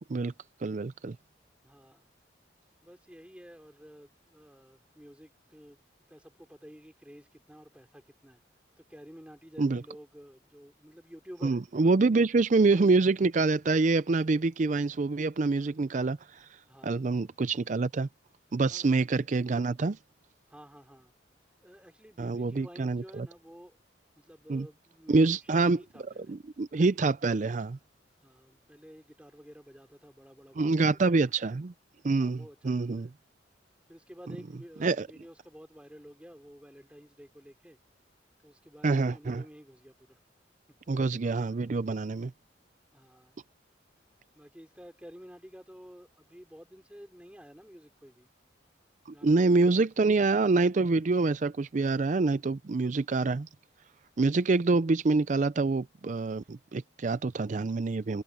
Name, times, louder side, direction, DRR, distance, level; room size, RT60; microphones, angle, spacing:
voice 1, 0.6-1.2 9.6-9.8 11.4-16.5 16.8-18.1 18.5-20.0 22.2-23.3 24.5-24.7 25.1-25.8 26.3-27.8 30.6-31.7 32.0-33.1 34.8-35.1 38.8-39.4 40.9-42.3 49.2-53.5 54.2-58.2, right 3 dB, 40° right, 0.4 m, -26 dB
voice 2, 1.6-2.1 2.8-5.8 6.1-8.4 8.8-11.6 12.0-12.4 16.7-17.1 18.7-18.9 20.5-21.1 21.6-23.8 24.2-26.4 28.2-31.0 32.2-33.1 33.9-37.8 38.4-40.2 42.9-43.4 44.3-48.3 49.1-49.7, equal, 5° right, 4.0 m, -51 dB
head